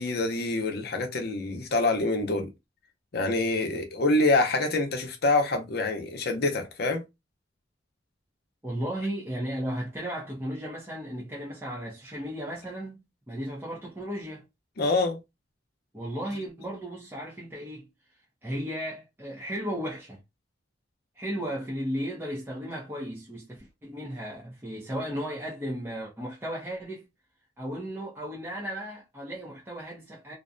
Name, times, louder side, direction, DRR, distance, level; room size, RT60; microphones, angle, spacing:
voice 1, 0.0-2.5 3.1-7.0 14.8-15.2, left 2 dB, 60° left, 0.7 m, -26 dB
voice 2, 8.6-13.0 13.3-14.4 15.9-17.9 18.4-20.2 21.2-27.1 27.6-30.3, equal, 10° right, 0.6 m, -35 dB
2.5 x 2.2 x 2.5 m
head